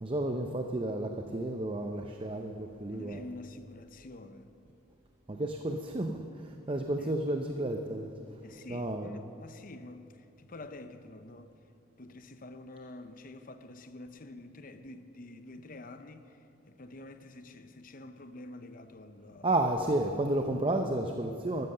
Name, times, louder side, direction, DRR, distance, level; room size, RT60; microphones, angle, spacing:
voice 1, 0.0-3.3 5.3-8.1 8.7-9.2 19.4-21.7, right 1 dB, 25° right, 0.6 m, -32 dB
voice 2, 2.9-4.5 7.0-7.1 8.4-11.6 12.0-19.5, left 2 dB, 45° left, 0.7 m, -48 dB
13.5 x 13.0 x 6.7 m
head